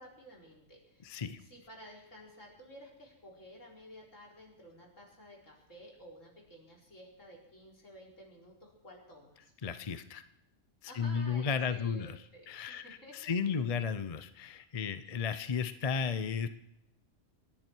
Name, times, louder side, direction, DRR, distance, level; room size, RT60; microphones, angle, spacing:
voice 1, 0.0-9.5 10.8-13.4, equal, 80° left, -2 dB, 4.8 m, -53 dB
voice 2, 1.0-1.4 9.6-10.2 10.8-12.2 12.5-16.5, left 6 dB, 35° left, 11 dB, 0.7 m, -34 dB
28.0 x 11.0 x 4.6 m, 0.80 s
omnidirectional pair, 1.3 m